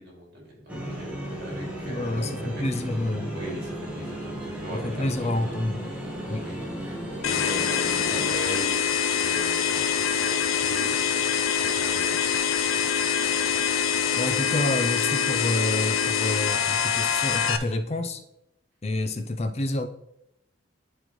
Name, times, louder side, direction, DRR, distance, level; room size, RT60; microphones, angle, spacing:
voice 1, 0.0-2.6 3.3-5.6 6.3-12.2, equal, 50° right, -2 dB, 2.6 m, -40 dB
sound 1, 0.7-8.3, right 1 dB, 5° right, 1.2 m, -35 dB
voice 2, 1.9-3.3 4.7-5.9 6.3-6.6 14.2-18.2 18.8-19.9, left 1 dB, 30° left, 8 dB, 0.5 m, -28 dB
sound 2, 7.2-17.6, left 7 dB, 90° left, 0.5 m, -25 dB
10.0 x 4.3 x 3.1 m, 0.82 s
head